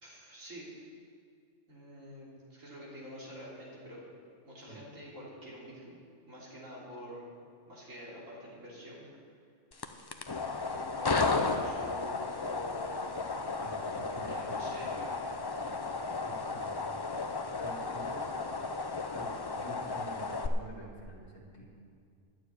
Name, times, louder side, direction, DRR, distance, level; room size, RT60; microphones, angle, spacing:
voice 1, 0.0-0.7 1.7-4.0 4.4-7.3 7.7-9.1 10.6-13.1 14.3-15.5, equal, 85° right, -6 dB, 3.7 m, -47 dB
sound 1, 9.7-20.5, left 3 dB, 35° left, 0.4 m, -34 dB
voice 2, 13.6-14.5 14.9-15.0 16.1-16.9 17.6-18.3 19.1-21.7, right 2 dB, 75° left, -3 dB, 2.6 m, -48 dB
11.5 x 7.0 x 9.6 m, 2.2 s
omnidirectional pair, 1.3 m